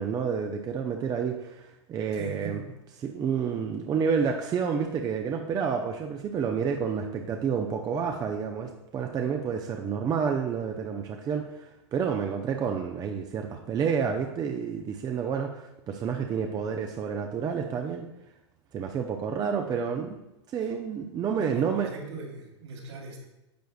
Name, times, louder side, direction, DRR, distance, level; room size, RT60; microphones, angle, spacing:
voice 1, 0.0-2.6 3.0-18.1 18.7-20.2 20.5-21.9, right 6 dB, 25° right, 3 dB, 0.6 m, -29 dB
voice 2, 2.1-2.6 20.6-20.7 21.4-23.2, right 3 dB, 70° right, -2 dB, 3.1 m, -40 dB
10.5 x 7.7 x 2.3 m, 0.92 s
hypercardioid pair, 100°, 15 cm